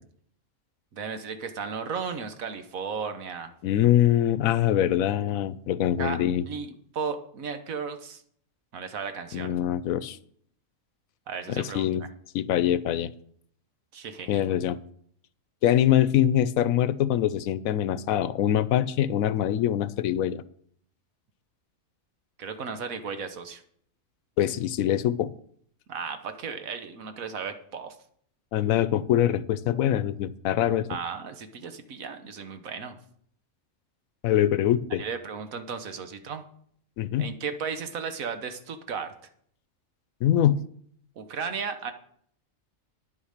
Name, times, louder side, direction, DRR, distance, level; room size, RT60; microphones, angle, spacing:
voice 1, 0.9-3.5 6.0-8.2 8.7-9.5 11.3-12.1 13.9-14.5 22.4-23.6 25.9-28.0 30.9-33.0 35.0-36.4 37.2-39.1 41.2-41.9, right 6 dB, 85° right, 8 dB, 1.5 m, -35 dB
voice 2, 3.6-6.4 9.3-10.2 11.6-12.0 12.3-13.1 14.3-14.8 15.6-20.4 24.4-25.3 28.5-30.9 34.2-35.0 37.0-37.3 40.2-40.6, left 11 dB, 90° left, 17 dB, 1.1 m, -24 dB
9.9 x 8.6 x 6.6 m, 0.64 s
omnidirectional pair, 1.4 m